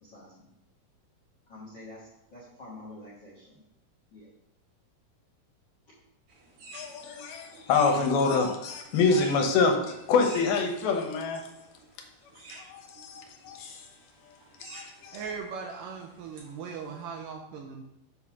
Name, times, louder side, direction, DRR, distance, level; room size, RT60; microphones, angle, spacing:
voice 1, 0.0-0.5 1.5-3.6 4.1-4.3, left 2 dB, 50° left, -6 dB, 1.4 m, -47 dB
sound 1, 6.3-17.0, right 2 dB, 50° right, 1.9 m, -51 dB
voice 2, 6.7-11.5 12.5-15.2, left 4 dB, 80° left, 3 dB, 2.9 m, -27 dB
voice 3, 15.1-17.8, right 5 dB, 80° right, 1 dB, 2.1 m, -39 dB
7.3 x 4.1 x 6.0 m, 0.84 s
omnidirectional pair, 4.3 m